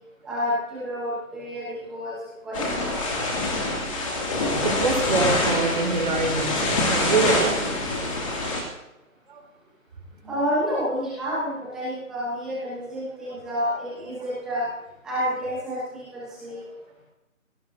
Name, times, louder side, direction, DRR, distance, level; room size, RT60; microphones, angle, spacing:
voice 1, 0.2-2.1 2.4-2.6 10.3-14.7 15.0-16.6, equal, ahead, -9 dB, 1.1 m, -29 dB
sound 1, 2.5-8.6, left 2 dB, 25° left, 2.7 m, -25 dB
voice 2, 4.8-7.8 9.3-9.4 10.2-10.3 16.6-16.7, right 3 dB, 35° right, 0 dB, 4.4 m, -25 dB
24.5 x 17.5 x 2.8 m, 0.89 s
figure-of-eight pair, 165°, 42 cm